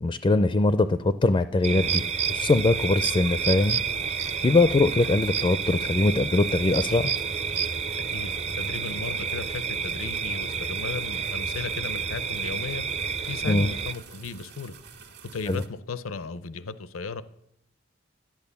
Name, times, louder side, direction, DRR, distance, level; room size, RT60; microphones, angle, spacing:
voice 1, 0.0-2.0 2.3-3.8 4.4-7.1 13.5-13.7 15.5-15.6, left 2 dB, 25° left, 12 dB, 0.4 m, -22 dB
sound 1, 1.6-13.9, right 6 dB, 30° right, 0.5 m, -29 dB
sound 2, 1.8-15.7, right 5 dB, 55° right, 1.7 m, -47 dB
voice 2, 8.1-12.8 13.3-14.7 15.3-17.2, left 4 dB, 80° left, 14 dB, 0.6 m, -35 dB
11.5 x 10.5 x 6.9 m, 0.79 s
head